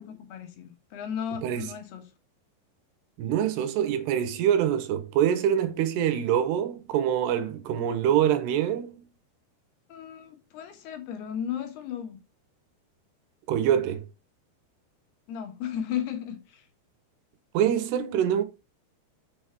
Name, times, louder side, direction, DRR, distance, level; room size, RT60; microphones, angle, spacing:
voice 1, 0.0-2.0 9.9-12.2 15.3-16.6, left 9 dB, 70° left, 3.2 m, -35 dB
voice 2, 3.2-9.1 13.5-14.1 17.5-18.4, right 10 dB, 75° right, 3.0 m, -25 dB
7.0 x 6.4 x 4.5 m
omnidirectional pair, 4.9 m